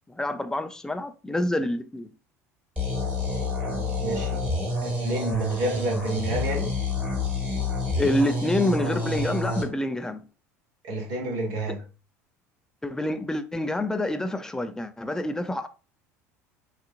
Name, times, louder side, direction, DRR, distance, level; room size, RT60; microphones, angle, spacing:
voice 1, 0.1-2.1 7.9-10.2 12.8-15.7, left 1 dB, 5° left, 0.5 m, -27 dB
sound 1, 2.8-9.6, left 2 dB, 15° right, 1.7 m, -28 dB
voice 2, 3.6-4.5 4.8-6.7 10.8-11.8, right 1 dB, 50° right, 1.6 m, -30 dB
6.3 x 2.5 x 2.5 m
figure-of-eight pair, 70°, 8 cm